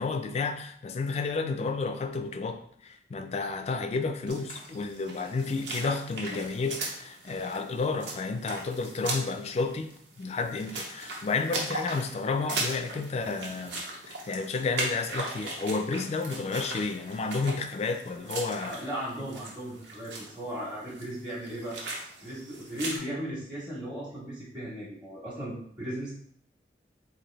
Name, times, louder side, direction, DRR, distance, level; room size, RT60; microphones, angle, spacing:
voice 1, 0.0-9.9 10.2-13.8 14.1-18.8, left 4 dB, 35° left, 7 dB, 0.3 m, -31 dB
sound 1, 4.3-23.0, right 2 dB, 80° right, 0.8 m, -38 dB
voice 2, 18.6-21.8 22.2-26.1, equal, 10° right, -10 dB, 0.8 m, -36 dB
4.0 x 2.6 x 3.2 m, 0.64 s
head